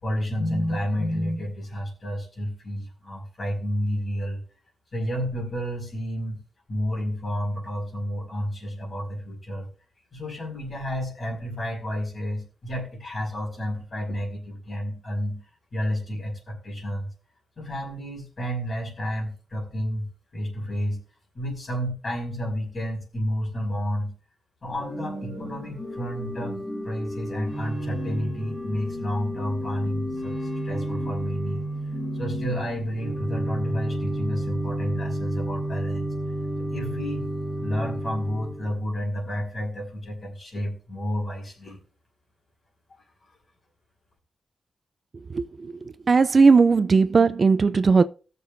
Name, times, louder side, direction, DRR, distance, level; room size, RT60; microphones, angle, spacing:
voice 1, 0.0-4.4 4.9-6.4 6.7-9.7 10.1-15.4 15.7-17.1 17.6-20.1 20.3-21.0 21.3-24.1 24.6-26.6 26.8-30.3 30.6-31.6 32.2-36.1 36.7-37.2 37.6-41.8, equal, 40° left, 5.0 m, -30 dB
Organ / Church bell, 24.6-38.8, right 1 dB, 20° left, 3.0 m, -31 dB
voice 2, 46.1-48.0, right 4 dB, 40° right, 0.3 m, -17 dB
19.5 x 6.8 x 2.6 m
wide cardioid pair, 150°, 0 cm